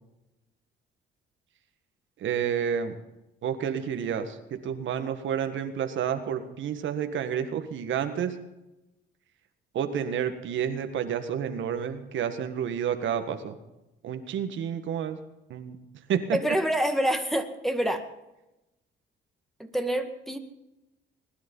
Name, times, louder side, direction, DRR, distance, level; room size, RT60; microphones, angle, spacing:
voice 1, 2.2-3.0 3.4-8.4 9.7-13.6 14.0-15.2 15.5-15.8 16.1-16.4, right 8 dB, 75° right, 7 dB, 1.7 m, -30 dB
voice 2, 16.3-18.0 19.6-20.4, right 1 dB, ahead, 7 dB, 2.0 m, -27 dB
20.5 x 11.0 x 5.5 m, 0.95 s
cardioid pair, 90°, 20 cm